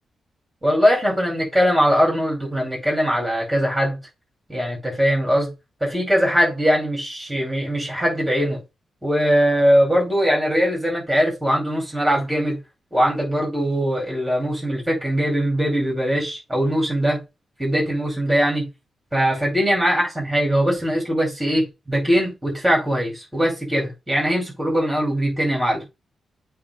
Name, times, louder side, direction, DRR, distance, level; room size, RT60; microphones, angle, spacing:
voice 1, 0.6-4.0 4.5-5.5 5.8-8.6 9.0-12.6 12.9-17.2 17.6-18.7 19.1-25.8, equal, 10° right, 4.9 m, -21 dB
8.5 x 3.0 x 5.3 m
wide cardioid pair, 120°, 0 cm